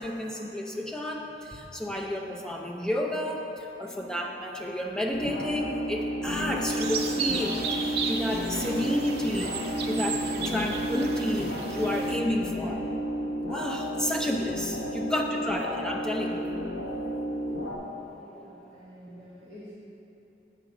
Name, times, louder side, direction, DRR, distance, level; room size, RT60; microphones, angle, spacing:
voice 1, 0.0-12.8 13.5-16.5, left 1 dB, 5° left, -1 dB, 0.6 m, -31 dB
voice 2, 3.9-4.2 18.0-19.8, equal, 25° right, -11 dB, 1.2 m, -48 dB
sound 1, 5.1-17.8, equal, 60° left, 1.0 m, -32 dB
sound 2, 6.7-12.2, right 5 dB, 60° right, 0.6 m, -34 dB
8.2 x 3.9 x 6.0 m, 2.9 s
head